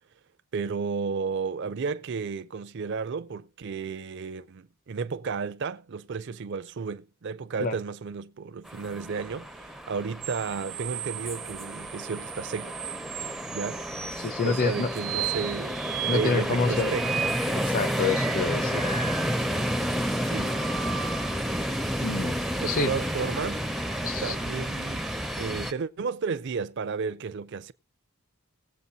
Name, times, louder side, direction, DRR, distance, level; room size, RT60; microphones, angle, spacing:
voice 1, 0.5-12.8 13.5-13.8 14.1-17.2 20.2-20.5 22.5-23.7 24.2-25.0 25.4-27.7, right 5 dB, 55° right, 0.5 m, -33 dB
sound 1, 8.7-25.7, equal, ahead, 0.5 m, -31 dB
sound 2, 10.2-19.8 20.2-21.6 23.4-24.6, right 10 dB, 80° right, 0.9 m, -37 dB
sound 3, 13.1-13.4 15.3-15.6, left 3 dB, 90° left, 1.7 m, -52 dB
voice 2, 14.2-14.9 16.1-16.9 17.5-18.9 22.0-22.4 22.6-22.9 24.0-24.3, left 4 dB, 40° left, 0.6 m, -27 dB
18.5 x 7.9 x 2.7 m
head